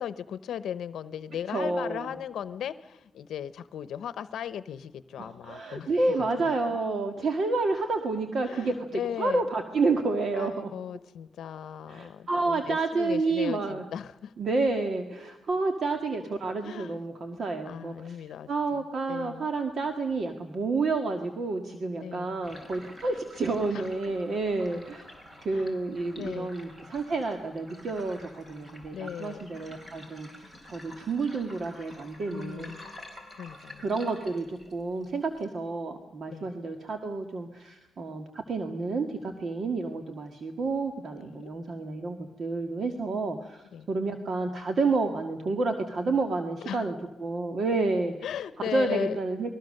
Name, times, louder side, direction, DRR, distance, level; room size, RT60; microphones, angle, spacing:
voice 1, 0.0-5.9 6.2-6.5 8.4-9.5 10.4-14.3 16.2-16.3 16.6-17.0 17.6-19.5 22.0-22.4 23.7-24.1 25.5-25.8 26.1-26.5 28.9-29.5 32.3-32.8 33.4-33.9 36.3-36.5 41.2-41.5 43.7-43.9 46.6-46.9 48.2-49.2, left 9 dB, 80° left, 14 dB, 0.8 m, -37 dB
voice 2, 1.5-2.1 5.2-10.7 11.9-13.8 14.4-18.2 18.5-25.1 25.4-32.8 33.8-46.9 47.2-48.1 48.6-49.5, right 3 dB, 50° right, 6 dB, 1.8 m, -30 dB
sound 1, 22.4-35.4, left 1 dB, 20° right, 4.0 m, -49 dB
29.0 x 21.0 x 6.6 m, 0.97 s
cardioid pair, 125°, 0 cm